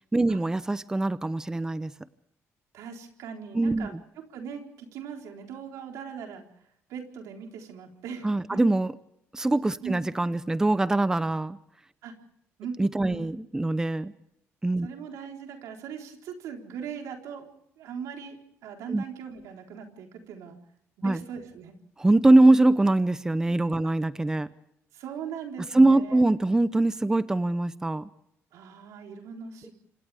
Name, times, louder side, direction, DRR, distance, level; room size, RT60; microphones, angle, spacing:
voice 1, 0.1-1.9 3.5-3.9 8.2-8.9 9.3-11.6 12.8-14.1 14.6-14.9 18.9-19.0 21.0-21.2 22.0-24.5 25.7-28.1, right 2 dB, 10° right, 14 dB, 0.7 m, -23 dB
voice 2, 2.7-4.0 4.3-6.5 6.9-8.6 9.8-10.0 12.0-12.1 12.6-12.8 13.1-13.3 14.8-17.5 17.8-20.6 21.0-21.7 24.9-26.3 28.5-29.7, right 7 dB, 90° right, 2 dB, 4.0 m, -40 dB
30.0 x 26.0 x 3.5 m, 0.76 s
cardioid pair, 110°, 5 cm